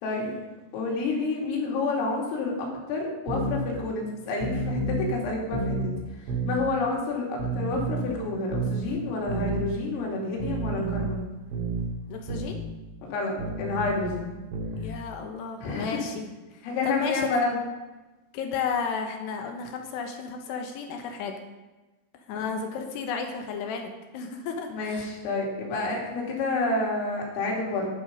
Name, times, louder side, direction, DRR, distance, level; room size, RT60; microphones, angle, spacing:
voice 1, 0.0-0.3 0.7-5.9 6.5-11.3 13.0-14.3 15.6-16.0 16.6-17.6 22.4-22.5 24.7-27.9, left 3 dB, 90° left, -1 dB, 5.2 m, -29 dB
sound 1, 3.3-3.6 4.4-5.1 5.5-5.9 6.3-6.6 7.4-8.1 8.5-8.8 9.3-9.6 10.4-11.1 11.5-11.9 12.3-12.6 13.4-14.1 14.5-14.9, right 3 dB, 75° right, 4.4 m, -30 dB
voice 2, 12.1-12.6 14.8-17.3 18.3-21.4 22.3-25.1, left 5 dB, 70° left, 4 dB, 2.8 m, -33 dB
11.5 x 11.5 x 5.3 m, 1.1 s
omnidirectional pair, 5.8 m